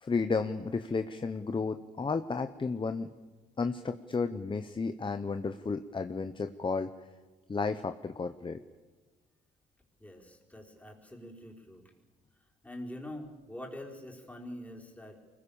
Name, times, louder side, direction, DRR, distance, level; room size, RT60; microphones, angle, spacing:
voice 1, 0.0-3.1 3.6-6.9 7.5-8.6, left 4 dB, 25° left, 9 dB, 1.0 m, -32 dB
voice 2, 10.0-11.9 12.6-15.2, left 1 dB, 5° left, -1 dB, 4.8 m, -45 dB
24.5 x 21.0 x 7.2 m, 1.3 s
cardioid pair, 90°, 20 cm